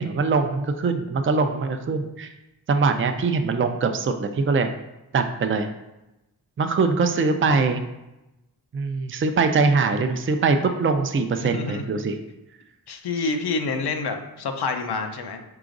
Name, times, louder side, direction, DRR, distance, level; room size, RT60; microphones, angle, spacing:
voice 1, 0.0-2.3 2.7-4.7 5.1-5.7 6.6-7.8 8.7-12.2, right 4 dB, 35° right, 6 dB, 0.4 m, -22 dB
voice 2, 11.4-11.9 12.9-15.4, left 4 dB, 85° left, 5 dB, 0.6 m, -28 dB
4.8 x 3.8 x 2.5 m, 0.95 s
cardioid pair, 50°, 38 cm